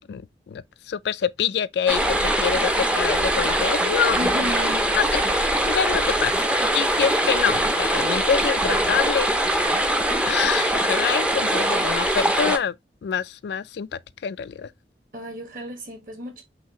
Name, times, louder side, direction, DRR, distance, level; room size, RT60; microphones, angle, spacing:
voice 1, 0.1-4.2 5.0-5.2 5.7-9.9 10.2-12.7 13.0-14.7, left 7 dB, 70° left, 0.3 m, -26 dB
sound 1, 1.9-12.6, right 1 dB, 5° right, 0.5 m, -22 dB
voice 2, 4.1-4.9 15.1-16.4, left 1 dB, 50° right, 1.5 m, -33 dB
5.6 x 2.8 x 2.9 m
head